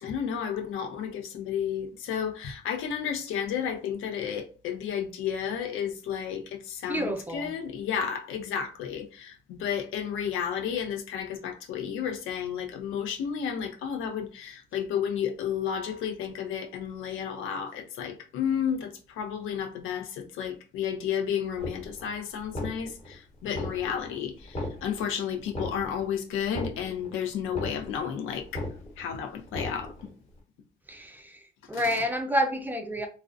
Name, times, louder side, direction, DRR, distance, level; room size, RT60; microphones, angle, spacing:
voice 1, 0.0-28.6 29.0-29.9 31.7-32.0, left 8 dB, 85° left, 0.5 m, -32 dB
voice 2, 6.9-7.5 30.9-31.4 31.7-33.1, equal, 10° right, 0.4 m, -29 dB
sound 1, 21.6-22.1 22.4-23.1 23.5-24.1 24.4-25.1 25.5-26.1 26.4-27.1 27.4-28.1 28.4-29.1 29.5-30.1, left 1 dB, 30° left, 1.1 m, -36 dB
2.5 x 2.1 x 2.5 m
cardioid pair, 90°, 20 cm